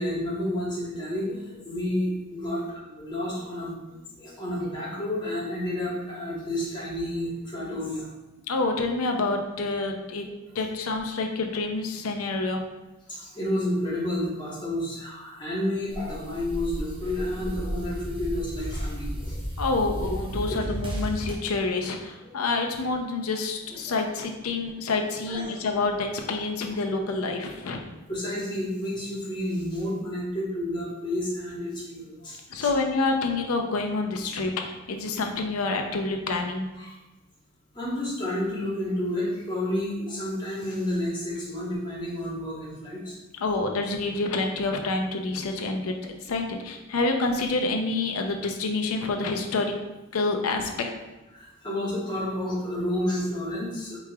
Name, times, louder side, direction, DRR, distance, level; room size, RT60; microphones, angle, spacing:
voice 1, 0.0-8.1 10.2-10.3 13.1-19.4 20.4-20.6 22.2-22.3 23.9-24.0 25.3-25.5 28.1-32.7 36.8-37.0 37.7-43.2 47.0-47.1 51.3-54.0, left 1 dB, 20° left, -7 dB, 1.2 m, -30 dB
voice 2, 8.5-10.3 10.5-12.6 19.6-27.8 32.5-36.7 43.4-49.7 50.1-50.9, left 3 dB, 85° left, 4 dB, 0.5 m, -27 dB
sound 1, 15.9-21.4, equal, 25° right, 0.5 m, -33 dB
4.7 x 3.0 x 2.3 m, 1.1 s
head